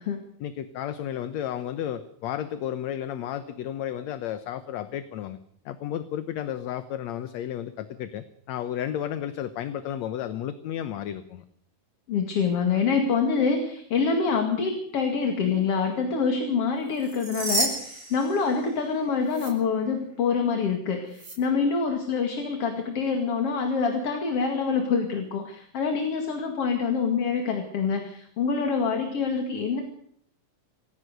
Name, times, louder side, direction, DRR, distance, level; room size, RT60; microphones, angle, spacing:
voice 1, 0.4-5.4 5.7-11.4, left 10 dB, 65° left, 11 dB, 2.0 m, -32 dB
voice 2, 12.1-29.8, left 5 dB, 50° left, 5 dB, 2.9 m, -26 dB
sound 1, 16.9-18.9 19.3-19.5 21.1-21.4, right 2 dB, 45° right, 7.3 m, -31 dB
27.0 x 16.5 x 6.7 m, 0.67 s
omnidirectional pair, 3.8 m